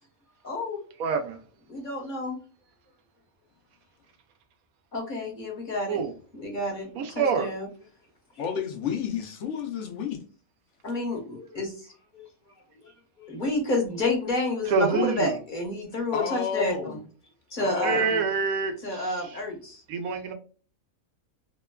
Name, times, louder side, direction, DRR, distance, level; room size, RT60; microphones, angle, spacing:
voice 1, 0.4-0.8 1.7-2.4 4.9-6.1 6.3-7.7 10.8-12.2 12.8-12.9 13.2-17.0 17.5-18.2 18.8-19.8, left 2 dB, 40° left, 0.9 m, -30 dB
voice 2, 1.0-1.4 5.9-6.1 7.0-7.5 14.7-15.3 17.8-18.7 19.9-20.3, right 5 dB, 90° right, 1.1 m, -26 dB
voice 3, 8.4-10.2 16.1-17.0 17.6-18.1, left 7 dB, 65° left, 0.8 m, -31 dB
2.9 x 2.1 x 2.2 m
omnidirectional pair, 1.4 m